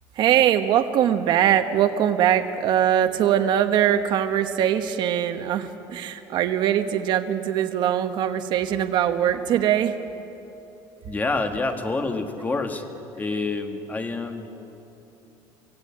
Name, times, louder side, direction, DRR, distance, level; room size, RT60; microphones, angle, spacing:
voice 1, 0.2-9.9, right 10 dB, 50° right, 8 dB, 1.1 m, -22 dB
voice 2, 11.0-12.8 13.1-14.5, left 3 dB, 15° left, 6 dB, 1.5 m, -27 dB
25.0 x 16.5 x 8.6 m, 3.0 s
cardioid pair, 155°, 10 cm